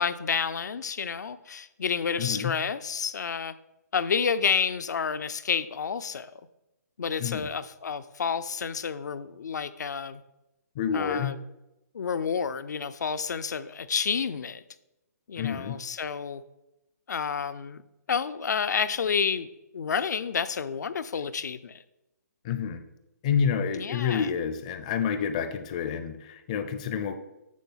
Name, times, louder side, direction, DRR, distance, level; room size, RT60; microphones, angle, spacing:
voice 1, 0.0-3.5 3.9-6.3 7.0-10.2 10.9-11.4 11.9-14.6 15.3-16.4 17.1-17.8 18.1-19.5 19.7-21.8 23.7-24.3, left 6 dB, 75° left, 14 dB, 0.5 m, -29 dB
voice 2, 2.2-2.5 7.2-7.5 10.8-11.3 15.4-15.8 22.4-22.8 23.2-27.2, left 7 dB, 25° left, 9 dB, 0.5 m, -28 dB
8.5 x 3.4 x 5.6 m, 0.91 s
hypercardioid pair, 165°, 10 cm